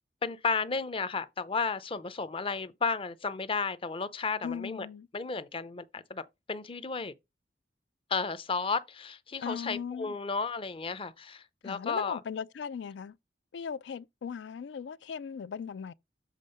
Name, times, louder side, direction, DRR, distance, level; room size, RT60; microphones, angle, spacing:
voice 1, 0.2-4.9 5.1-6.2 6.5-7.1 8.1-12.2, left 4 dB, 30° left, 0.6 m, -33 dB
voice 2, 4.4-5.1 9.4-10.2 11.6-13.2 13.5-15.9, left 6 dB, 80° left, 0.4 m, -38 dB
7.4 x 3.6 x 5.3 m
head